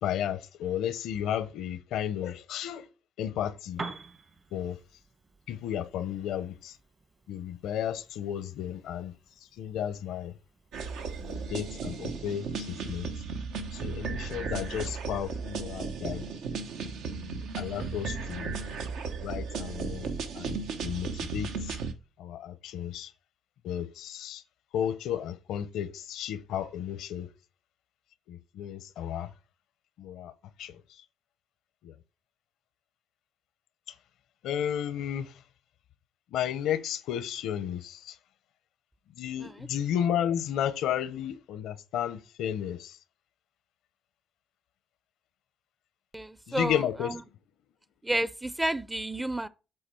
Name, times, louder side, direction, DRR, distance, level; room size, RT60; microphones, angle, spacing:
voice 1, 0.0-2.9 3.2-3.8 4.5-4.8 5.5-6.8 7.3-9.1 9.6-10.3 11.2-13.1 13.7-16.3 17.1-18.5 19.2-20.1 20.3-21.8 22.2-23.1 23.6-24.4 24.7-27.3 28.3-29.3 30.0-30.3 30.6-30.8 31.8-31.9 34.4-35.4 36.3-38.2 39.1-43.0 46.5-47.1, left 10 dB, 85° left, 0.6 m, -33 dB
Piano, 3.7-11.5, right 3 dB, 40° right, 1.3 m, -48 dB
sound 1, 10.7-21.9, right 5 dB, 85° right, 0.9 m, -35 dB
voice 2, 46.1-47.2 48.0-49.5, right 1 dB, 10° right, 0.5 m, -31 dB
7.8 x 3.9 x 4.4 m
cardioid pair, 90°, 0 cm